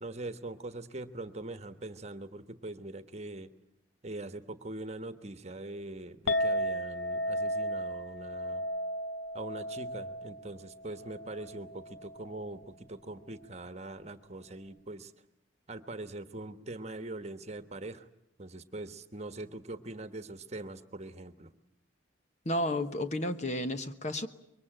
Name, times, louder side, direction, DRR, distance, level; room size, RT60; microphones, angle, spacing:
voice 1, 0.0-3.5 4.0-8.7 9.3-15.1 15.7-18.1 18.4-21.5, right 2 dB, 35° right, 10 dB, 1.3 m, -42 dB
Chink clink, 6.3-12.6, equal, 70° left, 1.2 m, -35 dB
voice 2, 22.4-24.3, left 1 dB, 35° left, 9 dB, 1.2 m, -32 dB
25.5 x 23.0 x 9.0 m, 0.78 s
head